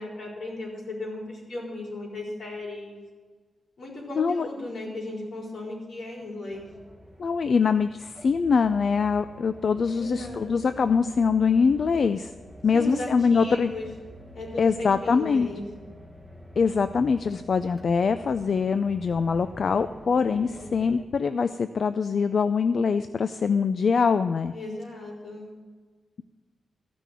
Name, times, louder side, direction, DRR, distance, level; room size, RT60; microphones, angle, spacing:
voice 1, 0.0-3.0 3.8-6.7 9.9-10.8 12.7-13.9 14.3-15.7 20.1-20.7 24.5-25.5, left 2 dB, 75° left, -3 dB, 4.4 m, -36 dB
voice 2, 4.2-4.5 7.2-12.3 12.6-13.7 14.6-15.5 16.6-24.5, left 5 dB, 50° left, 11 dB, 0.3 m, -23 dB
sound 1, 6.5-21.0, equal, 5° left, 1.0 m, -47 dB
14.5 x 6.1 x 8.2 m, 1.4 s
wide cardioid pair, 165°, 0 cm